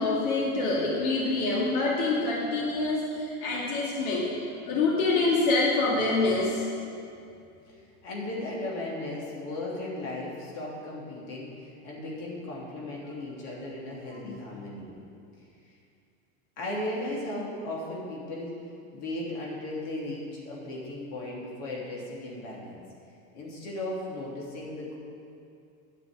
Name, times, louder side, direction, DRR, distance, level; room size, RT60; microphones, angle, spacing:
voice 1, 0.0-4.3 4.7-6.6 14.2-14.4, left 3 dB, 85° left, -4 dB, 2.2 m, -26 dB
voice 2, 8.0-14.9 16.6-18.6 18.9-22.8 23.3-25.0, left 1 dB, 60° left, -5 dB, 3.0 m, -36 dB
9.6 x 6.6 x 8.7 m, 2.5 s
supercardioid pair, 125°, 42 cm